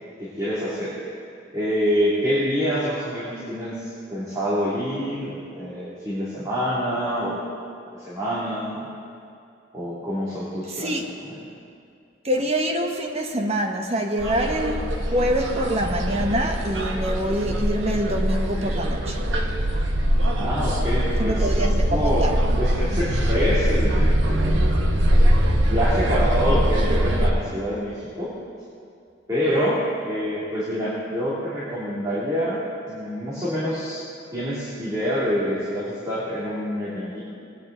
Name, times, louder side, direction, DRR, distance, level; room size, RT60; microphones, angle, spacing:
voice 1, 0.2-0.9 1.5-7.4 7.9-8.9 9.7-11.0 20.4-22.3 22.6-24.8 25.7-28.3 29.3-32.6 32.9-34.0 34.3-37.2, equal, 20° right, -10 dB, 2.7 m, -26 dB
voice 2, 10.8-11.1 12.2-19.2 21.2-22.4, right 1 dB, 35° right, 2 dB, 1.2 m, -25 dB
sound 1, 14.2-27.3, equal, 80° right, 1.3 m, -22 dB
20.5 x 9.4 x 3.9 m, 2.4 s
head